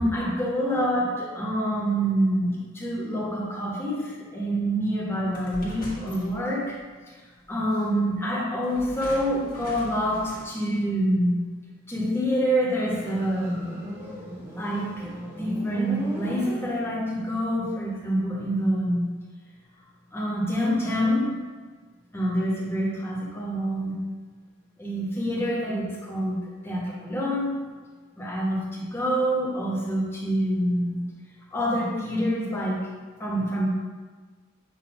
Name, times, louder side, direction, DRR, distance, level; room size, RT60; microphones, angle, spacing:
voice 1, 0.0-6.8 7.1-7.2 7.5-11.4 11.9-13.8 14.5-15.1 15.4-19.0 20.1-21.4 22.1-23.9 24.8-27.6 28.2-31.0 31.5-32.8 33.2-33.7, equal, 10° left, -5 dB, 1.1 m, -26 dB
sound 1, 5.3-6.8 7.7-7.8 8.6-10.8, left 1 dB, 40° left, 1.4 m, -41 dB
Motorcycle, 12.8-17.2, equal, 10° right, 0.9 m, -37 dB
7.8 x 2.9 x 4.9 m, 1.4 s
head